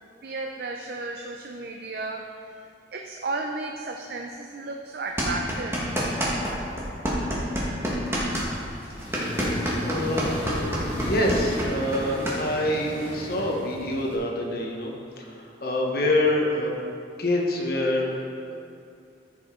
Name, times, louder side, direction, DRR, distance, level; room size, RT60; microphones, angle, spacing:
voice 1, 0.2-2.3 2.9-6.0, right 3 dB, 55° right, 2 dB, 0.5 m, -33 dB
sound 1, 5.2-6.5 6.8-12.4, equal, 15° right, 1.4 m, -27 dB
Accelerating revving vroom, 8.9-14.2, left 1 dB, 30° left, 1.7 m, -34 dB
voice 2, 9.8-10.4 11.0-14.9 15.2-16.7 17.2-18.3, left 1 dB, 50° left, -1 dB, 1.1 m, -26 dB
14.0 x 5.7 x 3.7 m, 2.5 s
head